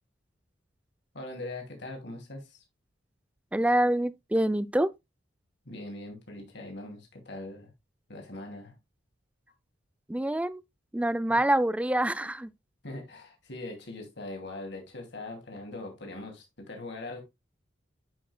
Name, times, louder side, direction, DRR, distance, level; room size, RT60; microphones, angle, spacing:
voice 1, 1.1-2.6 5.6-7.7 8.1-8.8 11.3-11.4 12.8-17.2, left 2 dB, 65° left, 2.6 m, -41 dB
voice 2, 3.5-4.9 10.1-10.6 10.9-12.5, right 1 dB, 5° right, 0.4 m, -26 dB
11.0 x 5.3 x 2.2 m
head